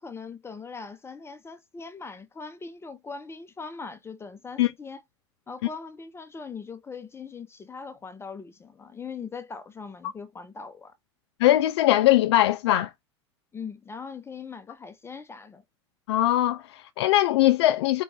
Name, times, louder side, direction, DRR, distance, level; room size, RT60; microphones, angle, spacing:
voice 1, 0.0-5.0 5.5-10.9 13.5-15.6, left 5 dB, 15° left, 0.6 m, -40 dB
voice 2, 11.4-12.9 16.1-18.0, left 14 dB, 65° left, 0.4 m, -21 dB
4.5 x 2.5 x 3.3 m
hypercardioid pair, 85°, 15 cm